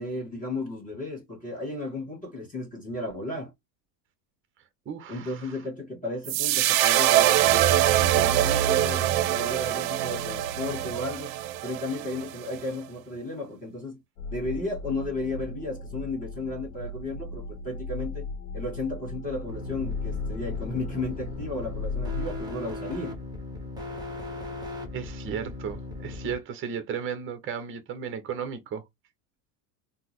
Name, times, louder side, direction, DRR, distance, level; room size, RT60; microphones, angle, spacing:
voice 1, 0.0-3.5 5.1-7.9 8.1-11.3 11.6-14.0 14.3-18.3 18.5-23.2, left 2 dB, 15° left, 1.7 m, -34 dB
voice 2, 4.9-5.5 24.9-28.8, right 7 dB, 25° right, 0.7 m, -35 dB
sound 1, 6.3-12.6, right 13 dB, 70° right, 0.6 m, -23 dB
sound 2, 14.2-22.4, left 3 dB, 60° left, 1.0 m, -36 dB
sound 3, 19.5-26.3, left 2 dB, 10° right, 1.1 m, -38 dB
3.7 x 2.1 x 3.0 m
supercardioid pair, 115°, 49 cm